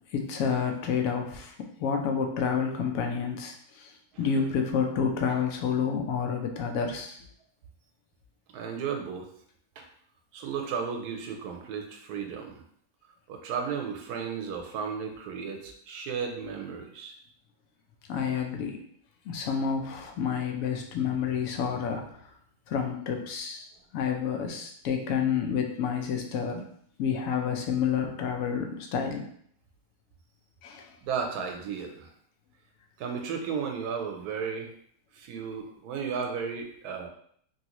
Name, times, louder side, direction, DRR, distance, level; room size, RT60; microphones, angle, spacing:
voice 1, 0.1-1.5 1.8-3.9 4.2-7.2 18.1-18.8 19.3-22.0 22.7-23.7 23.9-26.6 27.0-29.2 30.6-30.9, left 6 dB, 70° left, 3 dB, 1.0 m, -29 dB
voice 2, 8.5-9.3 9.8-9.9 10.3-12.6 13.3-17.1 31.0-32.1 33.0-34.7 35.1-37.1, right 6 dB, 90° right, 3 dB, 1.1 m, -34 dB
3.1 x 2.7 x 2.9 m, 0.64 s
omnidirectional pair, 1.6 m